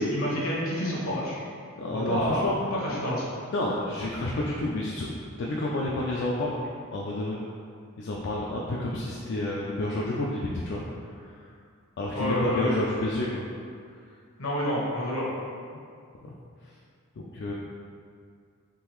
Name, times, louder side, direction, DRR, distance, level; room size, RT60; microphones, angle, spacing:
voice 1, 0.0-1.4 1.9-3.3 12.1-12.8 14.4-15.3, left 1 dB, 75° left, -6 dB, 1.1 m, -29 dB
voice 2, 1.8-2.5 2.9-3.0 3.5-5.1 5.4-6.6 6.9-7.4 8.0-10.8 11.2-11.4 12.0-13.4 16.2-16.4 17.2-17.5, left 1 dB, 55° left, -4 dB, 0.4 m, -30 dB
3.7 x 3.2 x 3.0 m, 2.3 s
head